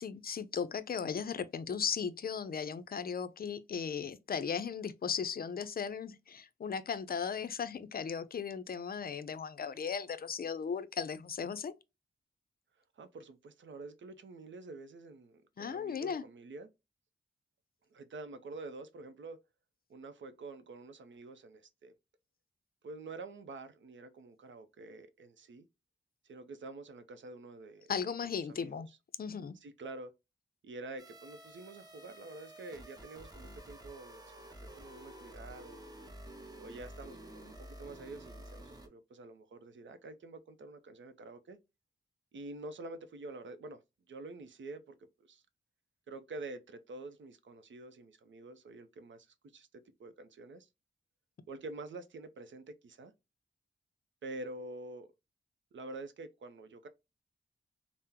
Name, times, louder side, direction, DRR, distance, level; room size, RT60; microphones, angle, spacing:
voice 1, 0.0-11.7 15.6-16.2 27.9-28.9 29.2-29.5, left 6 dB, 50° left, 0.4 m, -37 dB
voice 2, 12.9-16.7 17.9-19.4 19.9-21.9 22.8-25.7 26.2-28.0 28.5-29.0 29.6-30.1 30.6-35.8 36.6-41.6 42.3-43.8 44.1-45.4 46.1-50.7 51.5-53.1 54.2-55.1 55.7-56.9, right 2 dB, 70° right, 0.6 m, -47 dB
sound 1, 31.0-38.9, right 1 dB, 20° right, 0.8 m, -51 dB
3.6 x 2.0 x 2.8 m
cardioid pair, 65°, 20 cm